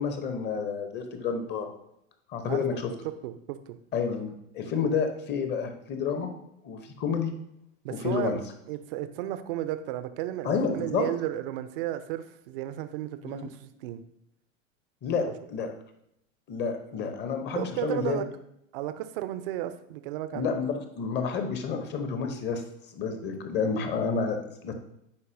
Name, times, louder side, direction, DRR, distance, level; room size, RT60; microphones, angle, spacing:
voice 1, 0.0-1.7 2.3-2.9 3.9-6.3 6.6-7.3 7.9-8.4 10.4-11.0 13.2-13.4 15.0-15.7 16.5-18.2 20.3-22.6 22.9-24.7, left 5 dB, 25° left, 7 dB, 0.8 m, -30 dB
voice 2, 2.5-3.8 7.8-14.0 15.2-15.7 17.5-18.3 18.7-20.7, right 13 dB, 45° right, 12 dB, 0.5 m, -34 dB
9.6 x 4.1 x 2.7 m, 0.78 s
figure-of-eight pair, 95°, 39 cm